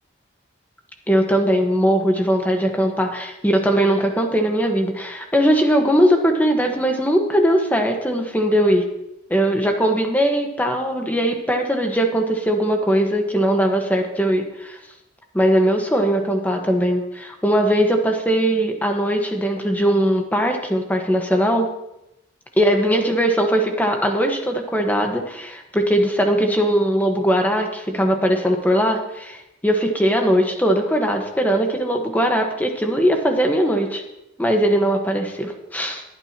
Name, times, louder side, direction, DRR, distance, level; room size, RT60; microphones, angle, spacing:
voice 1, 1.1-8.8 9.3-14.8 15.3-21.7 22.6-34.0 34.4-36.0, equal, 10° left, 3 dB, 1.3 m, -20 dB
21.5 x 9.1 x 2.9 m, 0.88 s
head